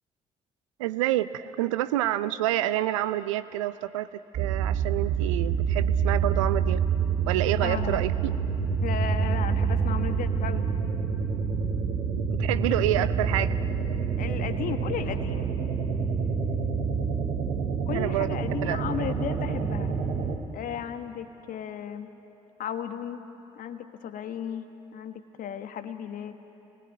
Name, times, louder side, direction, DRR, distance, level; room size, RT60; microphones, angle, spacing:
voice 1, 0.8-6.8 7.3-8.1 12.3-13.5 17.9-18.4 18.6-18.8, right 14 dB, 80° right, 15 dB, 0.6 m, -28 dB
sound 1, 4.3-20.4, right 6 dB, 60° right, 3.0 m, -27 dB
voice 2, 7.6-8.0 8.8-10.7 13.0-13.1 14.2-15.5 17.8-19.9 20.5-22.1 22.6-23.2 23.5-24.7 24.9-26.3, left 9 dB, 60° left, 8 dB, 1.6 m, -35 dB
30.0 x 20.5 x 9.4 m, 3.0 s
figure-of-eight pair, 40°, 16 cm